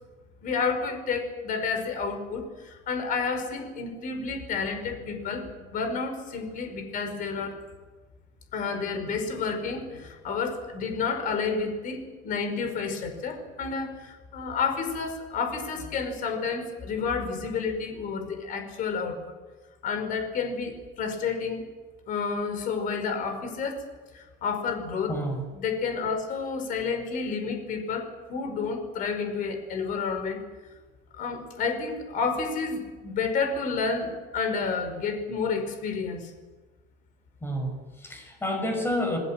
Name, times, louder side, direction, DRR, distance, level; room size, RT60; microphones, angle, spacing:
voice 1, 0.4-5.4 5.7-7.6 8.5-19.3 19.8-21.6 22.1-23.8 24.1-25.1 25.5-30.4 31.1-36.3, left 5 dB, 45° left, 6 dB, 5.3 m, -30 dB
voice 2, 25.1-25.4 37.4-39.2, equal, 10° left, 4 dB, 5.9 m, -29 dB
28.5 x 18.5 x 7.6 m, 1.3 s
cardioid pair, 170°, 19 cm